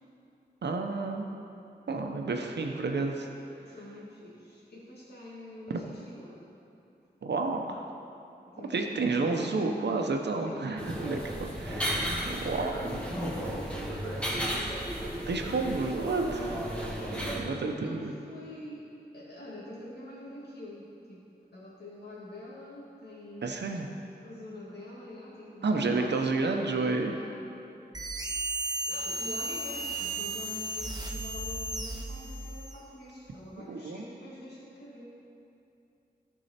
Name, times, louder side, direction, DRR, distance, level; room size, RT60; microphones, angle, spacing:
voice 1, 0.6-1.3 1.9-3.3 5.7-5.8 7.2-7.9 8.7-12.1 12.4-12.7 15.3-16.6 17.4-18.1 23.4-23.9 25.6-27.1 33.7-34.0, right 3 dB, 75° right, 3 dB, 0.9 m, -30 dB
voice 2, 3.6-6.4 8.5-9.3 9.6-11.2 12.2-14.2 17.1-18.9 19.1-21.2 21.5-23.5 24.2-27.4 28.9-35.1, left 1 dB, 65° left, -8 dB, 2.2 m, -45 dB
sound 1, 10.8-17.4, equal, 5° left, 1.8 m, -34 dB
sound 2, 27.9-32.8, right 2 dB, 20° right, 1.1 m, -34 dB
14.0 x 4.7 x 4.3 m, 2.7 s
cardioid pair, 50°, 18 cm